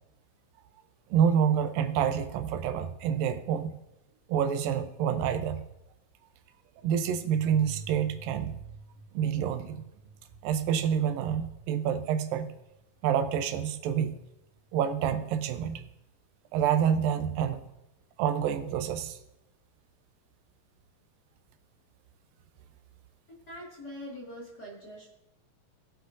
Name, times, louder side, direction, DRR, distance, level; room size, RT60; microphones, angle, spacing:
voice 1, 1.1-3.8 4.3-5.6 6.8-8.6 9.1-9.8 10.4-12.5 13.0-14.1 14.7-15.8 16.5-17.6 18.2-19.2, right 8 dB, 85° right, 9 dB, 2.4 m, -27 dB
sound 1, 6.8-15.2, right 2 dB, 70° right, 2.9 m, -50 dB
voice 2, 23.3-25.1, equal, 35° left, -4 dB, 1.9 m, -43 dB
20.5 x 7.3 x 2.5 m, 0.92 s
omnidirectional pair, 3.9 m